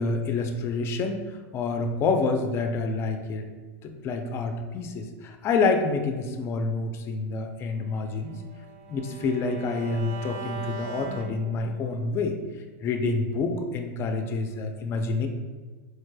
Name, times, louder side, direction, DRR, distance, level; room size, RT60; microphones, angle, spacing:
voice 1, 0.0-3.5 3.8-8.3 8.9-12.3 12.8-15.3, left 3 dB, 30° left, 5 dB, 0.4 m, -28 dB
Bowed string instrument, 7.8-12.0, right 4 dB, 60° right, 0.5 m, -41 dB
4.4 x 3.1 x 2.2 m, 1.4 s
supercardioid pair, 135°, 8 cm